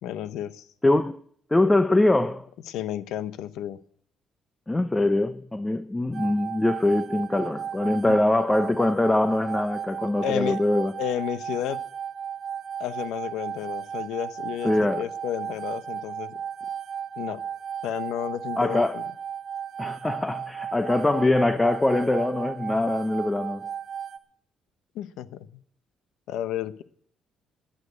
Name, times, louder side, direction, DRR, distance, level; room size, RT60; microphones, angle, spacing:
voice 1, 0.0-0.7 2.7-3.8 8.1-8.2 10.2-10.6 11.0-11.8 12.8-16.4 17.2-17.4 17.8-19.0 24.9-25.5 26.3-26.8, left 11 dB, 85° left, 0.7 m, -32 dB
voice 2, 0.8-1.2 1.5-2.5 4.7-10.9 14.6-15.1 18.6-19.0 19.8-23.7, left 2 dB, 15° left, 0.7 m, -23 dB
sound 1, 6.1-24.2, right 8 dB, 65° right, 0.9 m, -35 dB
11.5 x 9.1 x 9.5 m
cardioid pair, 85°, 0 cm